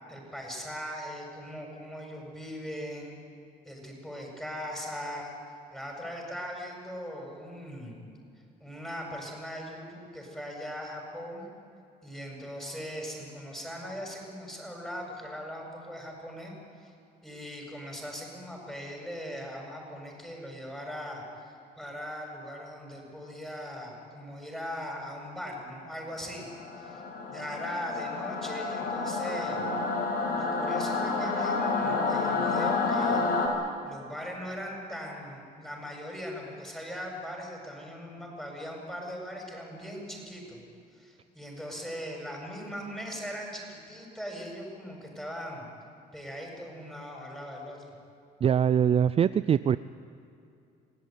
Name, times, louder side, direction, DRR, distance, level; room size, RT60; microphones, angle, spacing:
voice 1, 0.1-3.2 3.6-5.3 5.7-8.0 8.6-11.5 12.0-16.5 16.8-16.9 17.2-26.5 26.8-27.0 27.3-29.7 30.4-33.3 33.8-40.6 40.9-45.7 46.1-47.9, equal, 5° left, 0 dB, 7.9 m, -40 dB
Singing / Musical instrument, 26.3-33.5, left 4 dB, 65° left, 5.7 m, -29 dB
voice 2, 48.4-49.8, right 8 dB, 35° right, 14 dB, 0.5 m, -23 dB
25.5 x 17.5 x 9.5 m, 2.6 s
cardioid pair, 110°, 17 cm